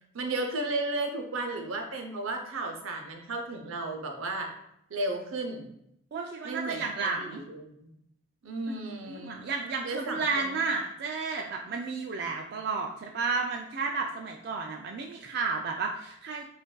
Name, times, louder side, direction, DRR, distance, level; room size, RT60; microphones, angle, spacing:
voice 1, 0.1-4.5 4.9-5.7 6.4-7.9 8.4-9.4 9.8-10.6, right 2 dB, 80° right, 3 dB, 0.7 m, -34 dB
voice 2, 6.1-7.4 8.7-8.8 9.0-16.4, right 4 dB, 50° right, 1 dB, 0.3 m, -32 dB
6.2 x 2.5 x 2.2 m, 0.76 s
head